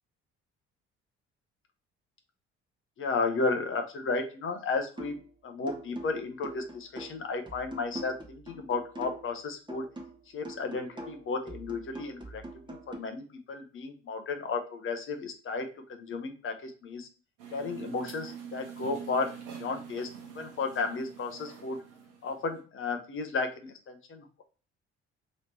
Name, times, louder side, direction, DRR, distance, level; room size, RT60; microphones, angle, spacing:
voice 1, 3.0-5.2 5.4-9.8 10.3-12.4 12.7-17.1 17.5-20.1 20.3-21.8 22.2-24.4, left 4 dB, 40° left, 6 dB, 0.9 m, -33 dB
sound 1, 5.0-5.3 5.7-9.4 9.7-13.0, right 2 dB, 15° right, 1.1 m, -44 dB
sound 2, 17.4-22.6, right 7 dB, 60° right, 1.1 m, -45 dB
3.1 x 3.1 x 4.2 m, 0.37 s
figure-of-eight pair, 50°, 34 cm